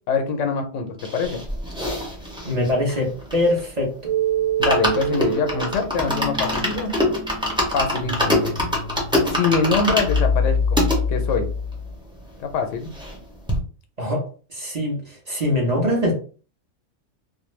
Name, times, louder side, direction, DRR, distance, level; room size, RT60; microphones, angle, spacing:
voice 1, 0.1-1.4 4.6-6.9 7.7-8.5 9.3-10.8 11.1-11.5 12.4-12.9, left 5 dB, 80° left, 6 dB, 0.9 m, -24 dB
sound 1, 1.0-3.8 4.1-4.2 4.4-11.0 11.6-11.7 11.8-11.9 12.2-13.2 13.5-13.6, left 1 dB, 5° right, 0.5 m, -25 dB
voice 2, 2.4-3.9 14.0-14.2 14.5-16.1, left 1 dB, 35° right, -3 dB, 0.8 m, -23 dB
sound 2, 4.0-11.9, equal, 70° right, 1.1 m, -26 dB
2.5 x 2.2 x 3.0 m, 0.38 s
omnidirectional pair, 1.3 m